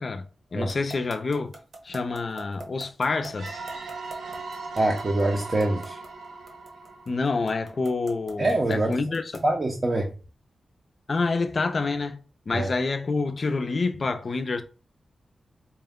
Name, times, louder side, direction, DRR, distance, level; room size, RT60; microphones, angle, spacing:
voice 1, 0.0-1.5 1.8-3.7 7.1-9.4 11.1-12.2 12.5-14.6, left 3 dB, 45° left, 0.5 m, -27 dB
sound 1, 0.7-9.6, right 2 dB, 65° right, 0.9 m, -43 dB
sound 2, 3.4-7.9, right 3 dB, 90° right, 0.6 m, -39 dB
voice 2, 4.8-6.0 8.4-8.9 9.4-10.0 12.5-12.7, right 2 dB, 35° right, 0.6 m, -24 dB
4.4 x 2.2 x 3.5 m
wide cardioid pair, 120°, 0 cm